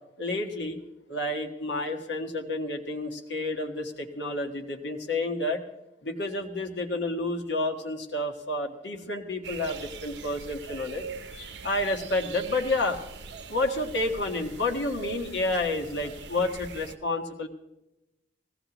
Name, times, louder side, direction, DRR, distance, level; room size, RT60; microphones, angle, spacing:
voice 1, 0.2-0.8 1.1-5.6 6.0-11.0 11.3-13.0 13.5-17.5, left 2 dB, 75° left, 2 dB, 1.6 m, -30 dB
sound 1, 9.4-16.9, right 5 dB, 80° right, 0.8 m, -41 dB
19.0 x 16.5 x 3.0 m, 0.93 s
head